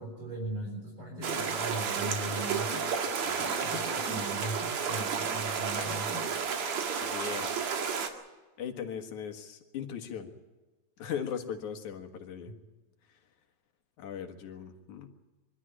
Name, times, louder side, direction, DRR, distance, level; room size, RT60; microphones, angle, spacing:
voice 1, 0.0-2.8 3.3-6.3, right 1 dB, 45° right, -2 dB, 6.5 m, -38 dB
sound 1, 1.2-8.1, right 6 dB, 70° right, 3.0 m, -32 dB
voice 2, 7.0-7.5 8.6-10.3 11.0-12.5 14.0-15.1, left 8 dB, 90° left, 5 dB, 3.1 m, -38 dB
24.5 x 13.0 x 10.0 m, 1.2 s
omnidirectional pair, 3.3 m